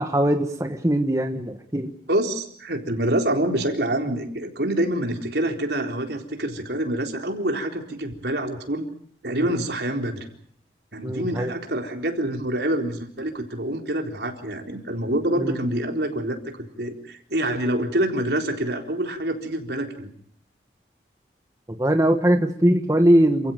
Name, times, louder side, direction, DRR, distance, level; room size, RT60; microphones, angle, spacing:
voice 1, 0.0-1.9 9.4-9.6 11.0-11.5 15.4-15.6 21.8-23.5, right 1 dB, 20° right, 6 dB, 1.3 m, -21 dB
voice 2, 2.1-8.8 9.2-10.3 10.9-16.4 16.8-20.1, right 1 dB, 70° right, 3 dB, 4.1 m, -26 dB
29.0 x 16.0 x 9.2 m, 0.64 s
head